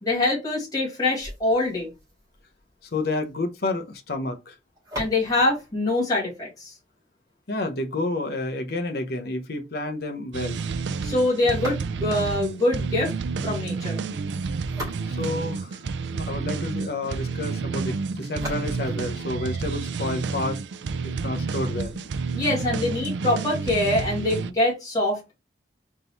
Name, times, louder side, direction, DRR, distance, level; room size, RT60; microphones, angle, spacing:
voice 1, 0.0-1.9 5.0-6.7 11.0-13.1 13.4-14.0 22.3-25.3, left 2 dB, 20° left, 1.8 m, -24 dB
sound 1, 1.1-7.1 11.5-12.3 14.4-16.3 18.3-20.3, equal, 20° right, 2.4 m, -42 dB
voice 2, 2.8-4.6 7.5-10.7 15.1-15.8 16.1-20.6 21.2-22.0, left 2 dB, 60° left, 0.7 m, -30 dB
sound 2, 10.3-24.5, right 4 dB, 80° right, 0.4 m, -30 dB
3.9 x 3.7 x 2.9 m
head